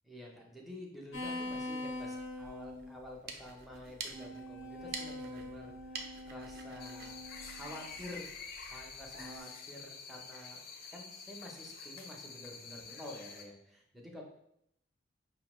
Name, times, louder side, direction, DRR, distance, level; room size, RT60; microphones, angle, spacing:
voice 1, 0.0-8.3 8.6-10.6 10.9-14.2, left 1 dB, ahead, -1 dB, 0.6 m, -49 dB
sound 1, 1.1-3.0 3.8-7.9 9.1-9.4, left 2 dB, 90° left, 1.0 m, -43 dB
sound 2, 3.0-8.3, right 5 dB, 50° right, 0.4 m, -48 dB
sound 3, 6.8-13.4, left 5 dB, 50° left, 0.4 m, -48 dB
5.4 x 2.1 x 3.0 m, 0.76 s
head